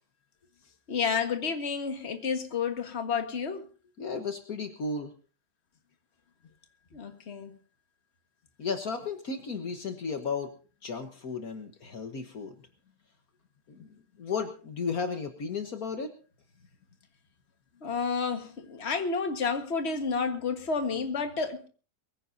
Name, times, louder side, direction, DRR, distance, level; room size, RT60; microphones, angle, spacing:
voice 1, 0.9-3.7 6.9-7.6 17.8-21.7, left 5 dB, 40° left, 1.8 m, -30 dB
voice 2, 4.0-5.1 8.6-10.5 10.8-12.7 13.7-16.1, left 5 dB, 60° left, 1.7 m, -34 dB
23.0 x 15.5 x 2.7 m
omnidirectional pair, 1.8 m